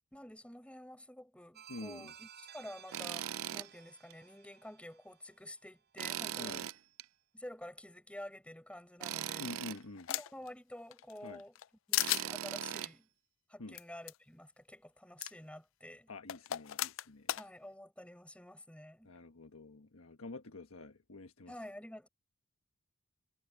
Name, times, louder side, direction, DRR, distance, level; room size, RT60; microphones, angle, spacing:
voice 1, 0.1-6.7 7.3-9.6 10.1-11.5 11.9-13.1 13.5-16.1 17.3-19.1 21.5-22.1, left 1 dB, 5° left, 7.6 m, -50 dB
sound 1, 1.5-6.3, right 9 dB, 50° right, 5.4 m, -57 dB
voice 2, 1.7-2.1 6.4-6.7 9.4-10.1 11.2-11.4 13.6-13.8 16.1-17.4 19.0-21.5, left 2 dB, 80° left, 1.3 m, -48 dB
Tools, 2.9-3.7 4.1-4.2 6.0-7.0 9.0-9.8 12.0-12.9, right 11 dB, 75° right, 0.5 m, -39 dB
sound 2, 9.1-10.5 10.9-11.7 11.9-12.3 13.7-13.8 14.1-14.2 15.2-15.3 16.3-17.4, left 15 dB, 65° left, 0.4 m, -35 dB
head